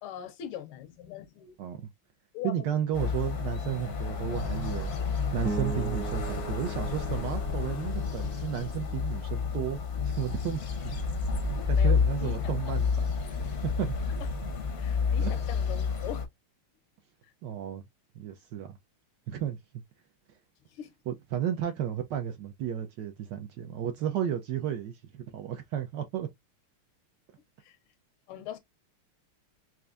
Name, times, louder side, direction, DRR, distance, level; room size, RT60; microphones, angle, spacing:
voice 1, 0.0-1.6 2.3-2.7 11.8-12.8 14.1-14.3 14.8-16.3 20.7-20.9 27.6-27.8 28.3-28.6, left 10 dB, 85° left, 1.6 m, -41 dB
voice 2, 2.4-4.9 5.3-10.8 11.7-13.1 13.6-13.9 15.2-15.3 17.4-17.8 18.2-18.8 19.3-19.6 21.1-26.3, right 10 dB, 75° right, 1.0 m, -33 dB
sound 1, 2.9-16.3, left 5 dB, 60° left, 0.7 m, -30 dB
sound 2, 5.4-9.9, right 2 dB, 15° right, 0.5 m, -40 dB
4.4 x 2.5 x 2.4 m
omnidirectional pair, 2.4 m